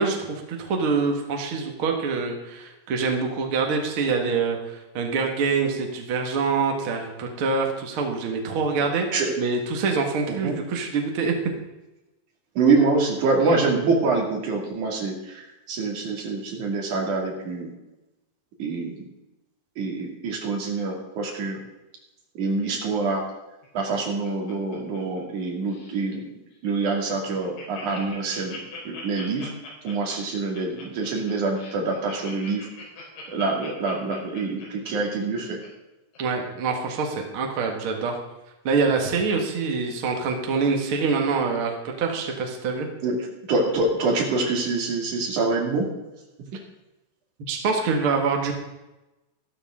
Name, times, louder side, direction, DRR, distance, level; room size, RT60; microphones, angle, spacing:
voice 1, 0.0-9.1 9.4-11.3 36.2-38.2 38.6-42.9 47.5-48.5, right 4 dB, 85° right, 2 dB, 1.1 m, -25 dB
voice 2, 10.3-10.6 12.5-17.7 18.6-19.1 19.8-21.6 22.3-23.3 23.7-28.6 28.8-29.5 29.8-32.7 33.3-35.6 43.0-45.9 46.5-46.6, right 3 dB, 50° right, 0 dB, 3.3 m, -25 dB
Laughter, 23.6-25.4 25.7-26.0 26.5-26.6 26.9-27.0 27.2-35.7 36.1-36.2, left 4 dB, 80° left, 6.4 m, -42 dB
14.5 x 13.0 x 3.7 m, 0.99 s
omnidirectional pair, 5.3 m